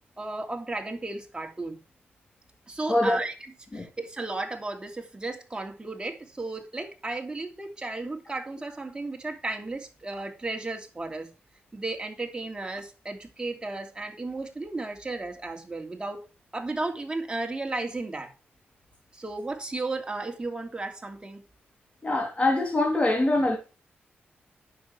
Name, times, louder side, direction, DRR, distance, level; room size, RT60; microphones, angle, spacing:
voice 1, 0.2-1.8 2.7-3.3 3.7-11.3 11.7-16.3 16.5-18.3 19.1-21.4, right 2 dB, 20° right, 2.9 m, -34 dB
voice 2, 2.9-3.2 3.7-3.9 22.0-23.6, left 2 dB, 30° left, 3.4 m, -24 dB
9.5 x 7.1 x 4.7 m
cardioid pair, 75°, 4 cm